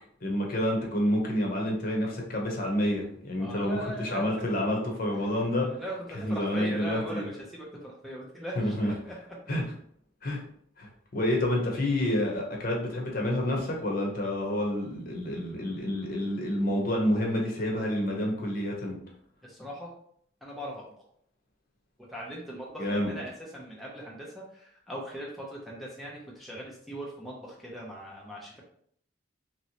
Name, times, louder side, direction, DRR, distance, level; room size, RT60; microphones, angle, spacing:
voice 1, 0.2-5.8 6.2-7.3 8.6-8.9 9.5-9.6 10.2-10.4 10.8-19.0 22.8-23.1, left 1 dB, 50° left, 0 dB, 0.8 m, -28 dB
voice 2, 3.4-4.3 4.6-4.7 5.7-5.9 6.2-9.1 19.4-19.9 20.4-20.8 22.1-28.6, equal, ahead, -4 dB, 0.5 m, -40 dB
3.0 x 2.9 x 2.8 m, 0.65 s
head